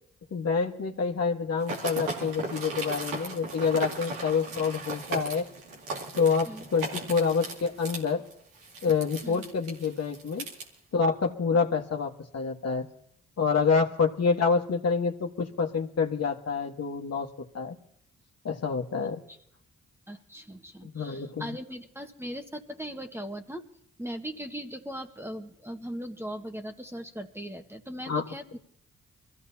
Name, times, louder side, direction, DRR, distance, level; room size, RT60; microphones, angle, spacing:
voice 1, 0.3-5.5 6.2-8.2 8.8-10.4 10.9-12.9 13.4-17.3 17.5-17.8 18.4-19.2 20.8-21.5 28.1-28.2, left 5 dB, 50° left, 2 dB, 1.7 m, -27 dB
sound 1, 1.6-10.6, right 2 dB, 85° right, 2.5 m, -37 dB
voice 2, 19.0-19.4 20.1-23.6 24.0-28.6, equal, 10° right, 5 dB, 1.5 m, -39 dB
25.0 x 15.0 x 2.9 m, 0.71 s
hypercardioid pair, 45°, 32 cm